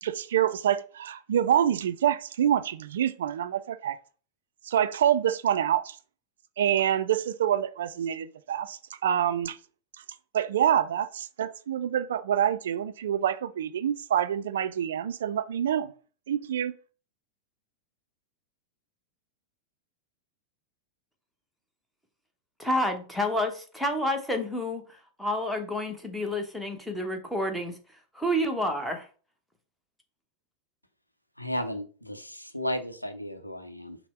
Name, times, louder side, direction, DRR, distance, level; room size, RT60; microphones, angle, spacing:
voice 1, 0.0-4.0 4.7-6.0 6.6-9.6 10.3-15.9 16.3-16.7, right 10 dB, 65° right, 0.3 m, -26 dB
voice 2, 22.6-27.8 28.1-29.1, left 1 dB, ahead, 1.0 m, -29 dB
voice 3, 31.4-34.0, left 1 dB, 90° left, 0.6 m, -34 dB
5.7 x 2.1 x 4.4 m
figure-of-eight pair, 90°, 0 cm